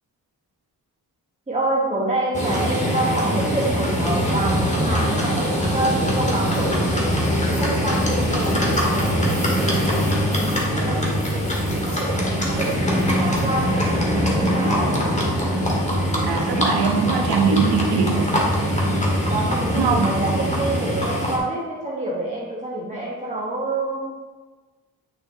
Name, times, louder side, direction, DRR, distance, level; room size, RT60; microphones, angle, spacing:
voice 1, 1.5-7.2 7.6-9.8 10.2-15.1 19.3-24.3, right 2 dB, 20° right, -5 dB, 1.2 m, -27 dB
Livestock farm animals working animals, 2.3-21.4, equal, 20° left, 1.7 m, -22 dB
sound 1, 4.3-20.7, right 7 dB, 40° right, 0.6 m, -35 dB
sound 2, 6.3-6.7 7.0-13.8, left 1 dB, 35° left, 2.4 m, -43 dB
voice 2, 16.2-18.3 19.7-20.1, right 5 dB, 90° right, 1 dB, 1.1 m, -21 dB
9.1 x 6.4 x 2.8 m, 1.3 s
wide cardioid pair, 95°, 37 cm